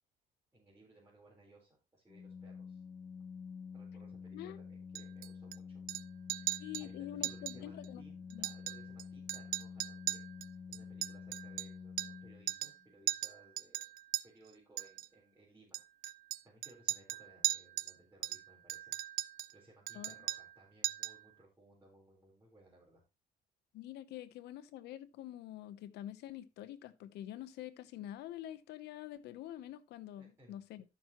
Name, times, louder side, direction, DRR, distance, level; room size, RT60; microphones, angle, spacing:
voice 1, 0.5-2.8 3.7-5.8 6.3-10.3 10.7-13.9 14.2-15.8 16.4-19.0 19.5-23.0 30.2-30.6, right 1 dB, 15° right, 4.1 m, -62 dB
Organ, 2.1-12.9, left 5 dB, 30° left, 1.8 m, -49 dB
Chink clink, 5.0-5.6 5.9-6.0 6.3-6.9 7.2-7.6 7.8-7.9 8.3-9.0 9.3-12.2 12.5-12.8 13.1-14.2 14.8-15.1 15.7-17.9 18.2-19.5 19.9-20.6 20.8-21.2, right 14 dB, 60° right, 0.4 m, -38 dB
voice 2, 6.6-8.0 8.3-8.5 19.9-20.1 23.7-30.8, left 12 dB, 75° left, 0.9 m, -46 dB
13.5 x 6.1 x 3.0 m
cardioid pair, 110°, 17 cm